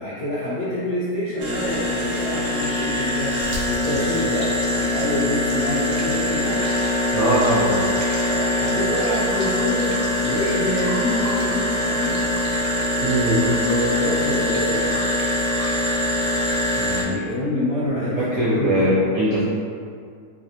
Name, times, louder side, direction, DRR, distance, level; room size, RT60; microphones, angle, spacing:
voice 1, 0.0-6.7 8.2-12.3 13.2-15.0 16.7-18.9, left 1 dB, 70° left, -10 dB, 0.7 m, -27 dB
sound 1, 1.4-17.0, left 1 dB, 80° right, 1.3 m, -23 dB
voice 2, 7.1-7.8 13.0-13.4 18.1-19.4, right 1 dB, 65° right, -9 dB, 0.8 m, -20 dB
3.2 x 2.6 x 2.7 m, 2.3 s
omnidirectional pair, 2.0 m